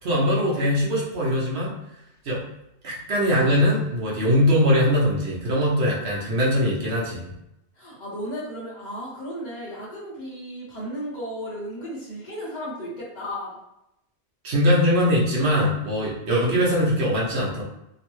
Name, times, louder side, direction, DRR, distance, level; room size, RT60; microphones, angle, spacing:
voice 1, 0.0-1.7 2.2-2.4 2.8-7.3 14.4-17.6, equal, 70° right, -5 dB, 1.1 m, -21 dB
voice 2, 7.7-13.6, equal, 45° left, -6 dB, 1.0 m, -34 dB
3.0 x 2.1 x 3.0 m, 0.84 s
omnidirectional pair, 1.1 m